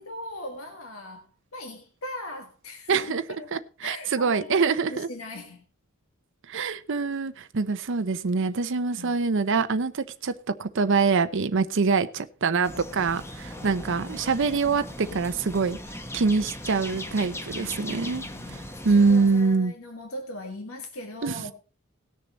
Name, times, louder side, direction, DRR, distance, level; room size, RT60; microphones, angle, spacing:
voice 1, 0.0-3.5 3.8-5.6 9.0-9.1 13.5-13.7 15.1-15.2 17.5-21.5, left 1 dB, 75° left, 1.8 m, -40 dB
voice 2, 2.9-3.2 3.5-5.1 6.4-19.7 21.2-21.5, right 4 dB, 60° right, 0.6 m, -25 dB
sound 1, 12.6-19.5, left 1 dB, 10° left, 1.1 m, -39 dB
18.5 x 6.9 x 4.0 m
head